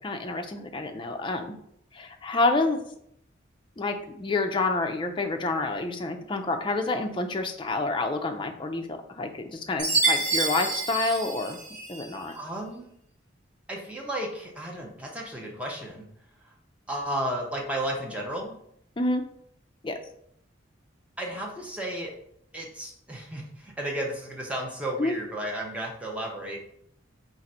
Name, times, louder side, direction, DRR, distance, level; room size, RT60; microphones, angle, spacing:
voice 1, 0.0-1.5 1.9-2.8 3.8-11.6 11.9-12.4 19.0-19.2 19.8-20.0 25.0-25.1, left 3 dB, 25° left, 5 dB, 0.4 m, -28 dB
Chime, 9.8-12.1, right 3 dB, 50° right, 1.2 m, -27 dB
voice 2, 12.3-12.9 13.7-16.0 16.9-18.6 21.2-22.1 22.5-26.7, right 1 dB, 5° right, -1 dB, 0.7 m, -33 dB
3.9 x 2.5 x 4.2 m, 0.71 s
head